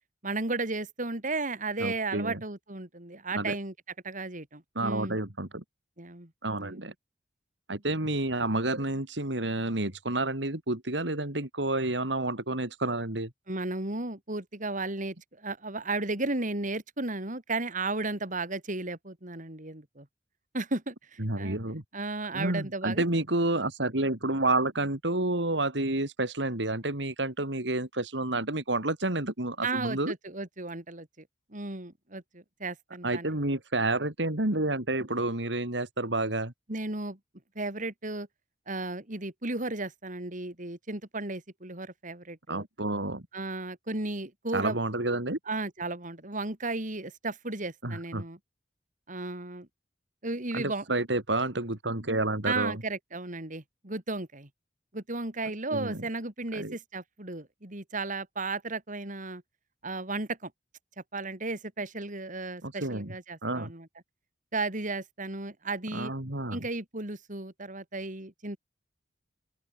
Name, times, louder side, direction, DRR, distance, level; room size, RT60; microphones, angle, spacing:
voice 1, 0.2-3.7 4.0-5.2 6.0-6.3 6.6-6.9 13.5-20.1 20.5-21.6 21.9-23.0 29.6-31.3 31.5-33.3 36.7-37.2 37.6-38.3 38.7-42.7 43.3-44.8 45.5-48.4 49.1-49.7 50.2-50.8 52.4-54.5 54.9-59.4 59.8-60.5 61.1-63.9 64.5-66.1 66.5-68.6, right 3 dB, 45° right, 3.9 m, -34 dB
voice 2, 1.8-2.4 3.3-3.5 4.8-5.6 6.4-6.9 7.7-13.3 21.2-21.8 22.3-30.1 33.0-36.5 42.5-43.2 44.5-45.4 47.8-48.2 50.5-52.8 55.7-56.0 56.5-56.8 62.6-63.1 63.4-63.7 65.9-66.6, right 2 dB, 70° right, 3.6 m, -29 dB
open air
head